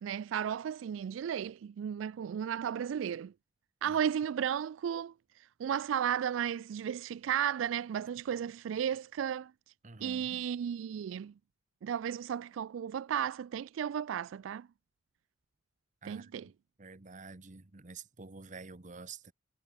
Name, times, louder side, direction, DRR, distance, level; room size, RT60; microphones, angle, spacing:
voice 1, 0.0-3.3 3.8-9.5 10.0-11.3 11.8-14.7 16.0-16.5, right 9 dB, 85° right, 0.3 m, -34 dB
voice 2, 9.8-10.5 16.0-16.5 16.8-19.3, right 4 dB, 40° right, 1.1 m, -49 dB
head